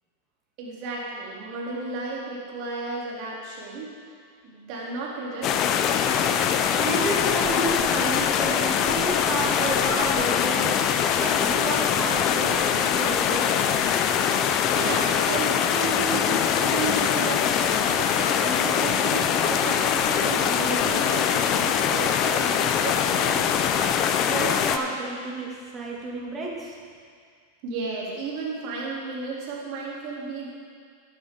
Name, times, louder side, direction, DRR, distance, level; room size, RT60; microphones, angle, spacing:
voice 1, 0.6-3.9 4.4-5.9 7.3-7.4 14.4-23.6 27.6-30.5, right 3 dB, 50° right, -4 dB, 3.1 m, -33 dB
sound 1, 5.4-24.8, left 8 dB, 40° left, 0.6 m, -23 dB
voice 2, 6.8-10.8 11.2-13.5 24.3-26.8, right 2 dB, 25° right, -3 dB, 2.3 m, -31 dB
12.5 x 8.8 x 3.8 m, 2.1 s
hypercardioid pair, 105°, 0 cm